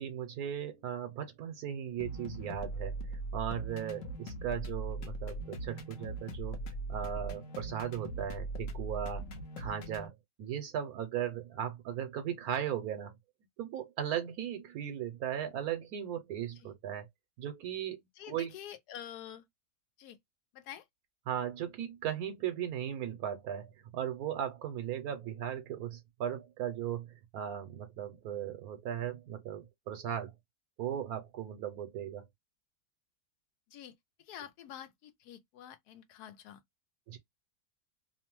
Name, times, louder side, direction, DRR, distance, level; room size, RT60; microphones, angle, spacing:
voice 1, 0.0-6.6 6.9-9.3 9.6-13.2 13.6-17.1 17.4-18.0 18.3-18.5 21.3-27.1 27.3-30.3 30.8-32.2 37.1-37.2, right 10 dB, 75° right, 1.0 m, -37 dB
sound 1, 2.0-10.1, right 2 dB, 65° left, 1.0 m, -40 dB
voice 2, 18.2-19.4 20.0-20.2 20.5-20.8 33.7-34.0 34.3-36.6, left 10 dB, 85° left, 1.2 m, -47 dB
2.9 x 2.1 x 2.9 m
omnidirectional pair, 1.6 m